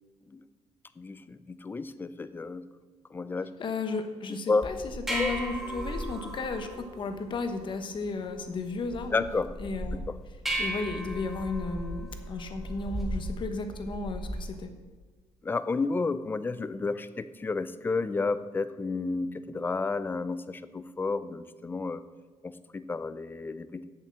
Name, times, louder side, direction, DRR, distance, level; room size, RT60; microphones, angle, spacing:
voice 1, 1.0-2.7 3.1-3.5 4.5-4.7 5.2-5.3 9.1-9.5 10.1-10.2 15.4-22.0 22.4-23.8, left 3 dB, 15° left, 13 dB, 0.4 m, -31 dB
voice 2, 3.6-4.8 5.1-9.3 9.6-10.0 10.6-14.7, left 3 dB, 40° left, 7 dB, 1.1 m, -34 dB
sound 1, 4.6-14.6, right 1 dB, ahead, 1.8 m, -37 dB
8.1 x 7.3 x 7.4 m, 1.3 s
cardioid pair, 155°, 13 cm